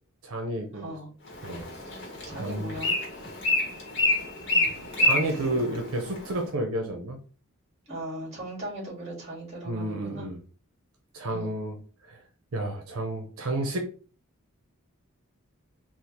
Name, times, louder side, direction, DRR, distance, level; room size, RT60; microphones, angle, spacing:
voice 1, 0.2-0.9 1.4-1.7 2.4-2.7 5.0-7.2 9.7-10.4 11.1-11.8 12.1-12.2 12.5-13.9, right 1 dB, 80° right, 3 dB, 0.7 m, -31 dB
voice 2, 0.7-1.1 2.3-2.9 4.5-5.6 7.9-10.3 11.3-11.5, right 1 dB, 30° right, -3 dB, 1.8 m, -39 dB
Bird, 1.3-6.4, left 1 dB, 55° left, 1.3 m, -28 dB
3.6 x 2.4 x 2.9 m, 0.39 s
head